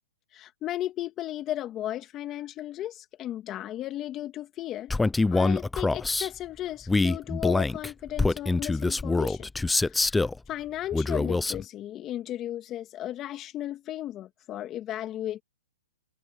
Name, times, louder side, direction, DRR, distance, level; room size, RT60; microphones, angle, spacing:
voice 1, 0.3-4.9 5.3-9.5 9.8-15.4, left 13 dB, 25° left, 2.7 m, -35 dB
Male speech man speaking, 4.9-6.3 6.9-10.4 10.9-11.6, left 3 dB, 5° left, 0.6 m, -25 dB
open air
hypercardioid pair, 150°, 0 cm